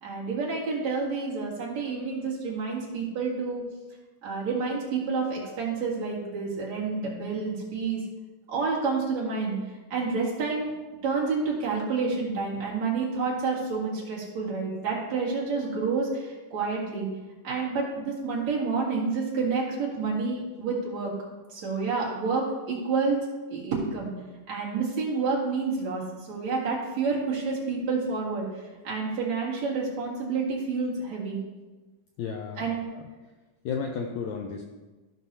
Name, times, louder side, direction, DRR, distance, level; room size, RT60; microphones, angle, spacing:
voice 1, 0.0-3.6 4.2-8.0 8.5-9.6 9.9-10.7 11.0-17.1 17.4-21.1 21.5-24.1 24.5-26.0 26.3-28.5 28.8-31.4 32.6-32.9, right 4 dB, 60° right, -5 dB, 3.0 m, -29 dB
voice 2, 32.2-32.7 32.9-33.0 33.7-34.6, left 6 dB, 80° left, 2 dB, 1.6 m, -32 dB
14.5 x 6.0 x 2.8 m, 1.2 s
omnidirectional pair, 3.8 m